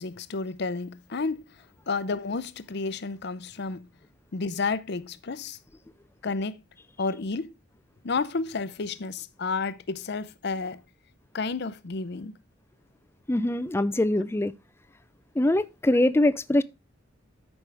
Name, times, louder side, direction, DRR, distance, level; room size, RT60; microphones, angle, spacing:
voice 1, 0.0-1.4 1.9-3.9 4.3-5.6 6.2-6.6 7.0-7.5 8.0-10.8 11.3-12.3, left 4 dB, 55° left, 0.6 m, -31 dB
voice 2, 13.3-14.5 15.4-16.6, left 1 dB, 10° left, 0.4 m, -23 dB
13.0 x 5.3 x 3.4 m
head